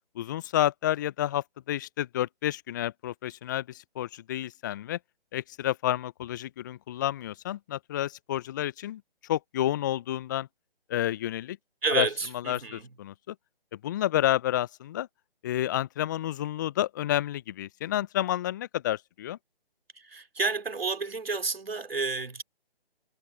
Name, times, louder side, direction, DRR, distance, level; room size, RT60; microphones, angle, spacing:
voice 1, 0.1-5.0 5.3-10.5 10.9-11.6 11.9-12.1 12.5-13.3 13.8-15.1 15.4-19.4, left 13 dB, 20° left, 0.8 m, -30 dB
voice 2, 11.8-12.9 19.9-22.4, right 4 dB, 70° right, 3.0 m, -30 dB
figure-of-eight pair, 145°, 30 cm